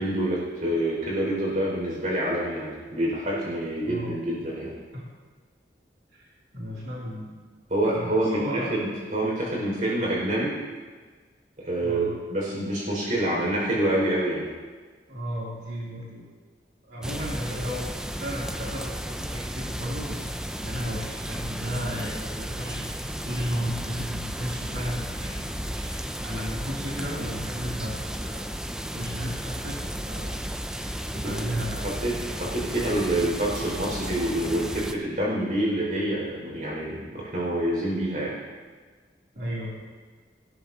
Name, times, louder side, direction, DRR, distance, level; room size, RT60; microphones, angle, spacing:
voice 1, 0.0-4.7 7.7-10.6 11.6-14.5 31.2-31.5 31.8-38.4, right 1 dB, 45° right, -4 dB, 5.5 m, -27 dB
voice 2, 3.8-4.2 4.9-5.0 6.1-7.4 7.8-8.8 11.8-12.1 15.1-16.3 16.8-20.3 20.6-28.4 28.7-30.4 31.1-31.9 39.3-39.8, equal, 80° right, -7 dB, 3.1 m, -34 dB
sound 1, 17.0-34.9, equal, 5° right, 0.4 m, -33 dB
19.0 x 15.5 x 2.9 m, 1.5 s
head